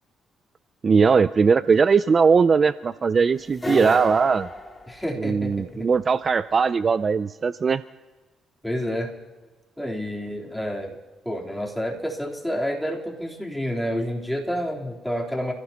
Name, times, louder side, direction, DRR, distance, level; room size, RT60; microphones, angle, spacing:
voice 1, 0.8-4.5 5.2-7.8, right 5 dB, 40° right, 14 dB, 0.4 m, -19 dB
sound 1, 3.5-5.5, left 1 dB, 20° left, 2.9 m, -33 dB
voice 2, 3.6-4.0 4.9-5.9 8.6-9.1 9.8-10.9 11.3-15.5, equal, ahead, -2 dB, 3.5 m, -29 dB
30.0 x 16.0 x 2.9 m, 1.2 s
cardioid pair, 90°, 0 cm